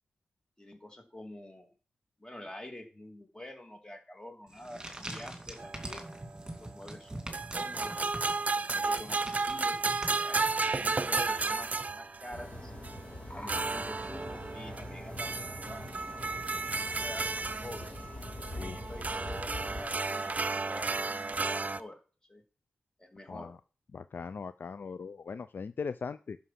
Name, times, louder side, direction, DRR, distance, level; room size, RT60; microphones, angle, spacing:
voice 1, 0.6-1.7 2.2-6.1 6.6-8.0 8.5-12.7 13.3-16.4 16.7-17.9 18.3-20.9 21.4-22.0 22.3-22.4 23.0-23.5, left 1 dB, 20° left, 4 dB, 2.5 m, -47 dB
sound 1, 4.5-11.0, right 1 dB, 20° right, 2.4 m, -44 dB
sound 2, 5.6-6.5 7.3-12.5 12.8-13.0 13.5-21.8, right 3 dB, 40° right, 0.7 m, -33 dB
sound 3, 12.3-19.8, left 1 dB, 40° left, 3.4 m, -43 dB
voice 2, 23.3-23.6 23.9-26.4, left 5 dB, 60° left, 13 dB, 0.4 m, -39 dB
11.0 x 5.8 x 5.8 m, 0.38 s
cardioid pair, 65°, 4 cm